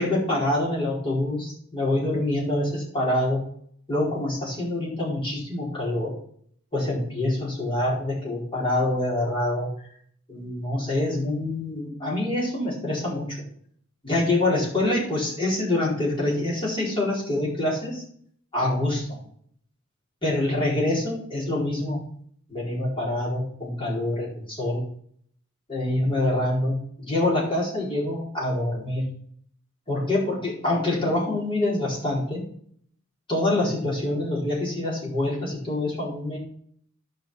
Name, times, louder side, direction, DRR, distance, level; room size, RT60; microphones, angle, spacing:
voice 1, 0.0-3.4 3.9-6.2 6.7-9.7 10.3-13.4 14.0-18.0 18.5-19.0 20.2-22.0 22.5-24.8 25.7-29.1 29.9-32.4 33.3-36.4, left 1 dB, 25° left, -5 dB, 4.7 m, -25 dB
12.5 x 5.5 x 5.7 m, 0.62 s
head